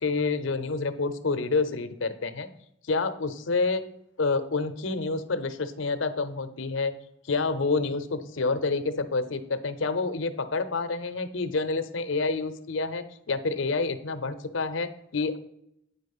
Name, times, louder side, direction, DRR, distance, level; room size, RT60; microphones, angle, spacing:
voice 1, 0.0-2.5 2.9-3.8 4.2-6.9 7.3-15.4, left 3 dB, 80° left, 11 dB, 0.7 m, -28 dB
9.1 x 4.2 x 5.4 m, 0.78 s
head